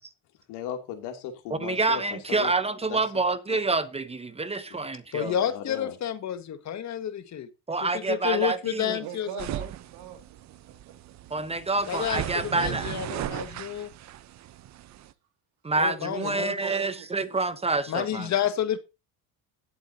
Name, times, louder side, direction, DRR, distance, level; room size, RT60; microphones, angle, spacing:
voice 1, 0.5-2.5 2.9-3.0 4.7-4.8 5.4-6.0, left 9 dB, 90° left, 2.8 m, -37 dB
voice 2, 1.6-5.3 7.7-9.0 11.3-13.0 15.6-18.3, right 3 dB, 15° right, 0.9 m, -27 dB
voice 3, 5.1-7.5 7.8-9.5 11.9-13.9 15.8-16.5 17.9-18.8, left 9 dB, 45° left, 1.7 m, -30 dB
voice 4, 8.6-11.0 14.2-14.3 16.0-17.4, right 9 dB, 75° right, 2.5 m, -41 dB
sound 1, 9.4-15.1, right 12 dB, 45° right, 0.8 m, -37 dB
17.0 x 7.8 x 2.8 m
cardioid pair, 125°, 39 cm